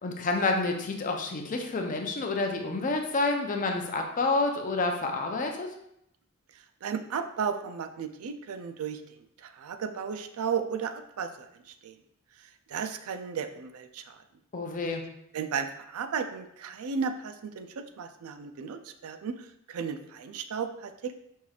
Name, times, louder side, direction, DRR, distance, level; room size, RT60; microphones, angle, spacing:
voice 1, 0.0-5.7 14.5-15.1, left 3 dB, 35° left, 3 dB, 0.5 m, -29 dB
voice 2, 6.5-9.0 9.4-12.0 12.4-14.2 15.3-21.2, right 6 dB, 75° right, 7 dB, 0.4 m, -35 dB
5.4 x 3.2 x 2.3 m, 0.75 s
head